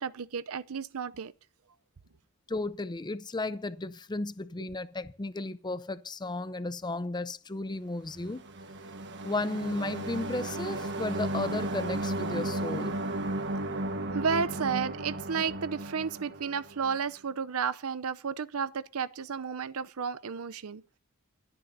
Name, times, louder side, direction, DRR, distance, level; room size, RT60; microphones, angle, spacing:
voice 1, 0.0-1.3 14.1-21.0, right 6 dB, 70° right, 0.6 m, -32 dB
voice 2, 2.5-8.4 9.2-13.0, left 2 dB, 20° left, 0.6 m, -34 dB
sound 1, 8.3-17.0, right 1 dB, 55° right, 1.5 m, -34 dB
27.5 x 9.9 x 2.7 m
head